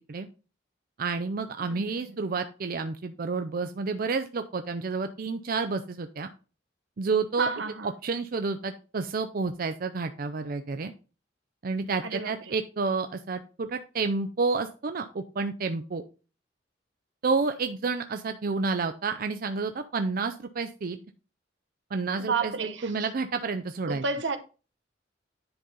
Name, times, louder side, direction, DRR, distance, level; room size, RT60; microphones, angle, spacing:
voice 1, 1.0-6.3 7.0-7.5 7.8-10.9 11.6-16.0 17.2-21.0 21.9-22.5 22.8-24.0, right 4 dB, 50° right, 0.5 m, -30 dB
voice 2, 1.6-2.2 7.4-7.9 12.0-12.3 22.2-22.9 23.9-24.4, right 4 dB, 80° right, 1.0 m, -31 dB
10.5 x 4.1 x 3.8 m
head